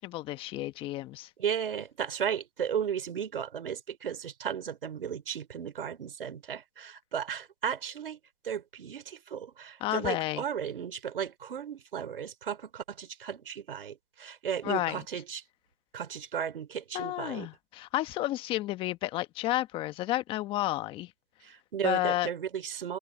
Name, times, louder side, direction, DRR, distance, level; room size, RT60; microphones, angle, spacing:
voice 1, 0.0-1.3 9.8-10.4 14.6-15.0 16.9-21.1 21.8-22.3, left 16 dB, 20° left, 1.2 m, -31 dB
voice 2, 1.4-15.4 15.9-17.5 21.4-23.0, right 8 dB, 70° right, 4.0 m, -35 dB
hypercardioid pair, 150°, 30 cm